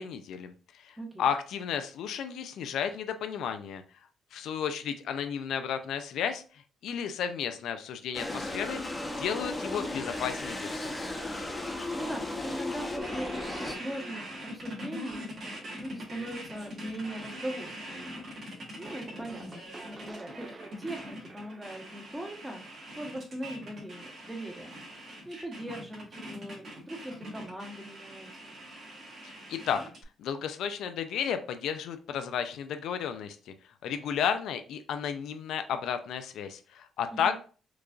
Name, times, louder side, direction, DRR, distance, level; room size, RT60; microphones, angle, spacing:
voice 1, 0.0-3.8 4.3-6.4 6.8-10.9 29.5-29.8 30.2-33.5 33.8-37.4, left 8 dB, 80° left, 8 dB, 0.4 m, -33 dB
sound 1, 8.1-13.8, left 2 dB, 15° left, 0.8 m, -35 dB
voice 2, 11.9-24.7 25.2-28.6 37.1-37.4, right 1 dB, 10° right, 2 dB, 1.0 m, -40 dB
sound 2, 13.0-30.0, equal, 55° right, 1.7 m, -43 dB
sound 3, 18.9-24.4, right 2 dB, 30° right, 0.6 m, -51 dB
4.6 x 2.4 x 2.4 m, 0.38 s
cardioid pair, 90°, 0 cm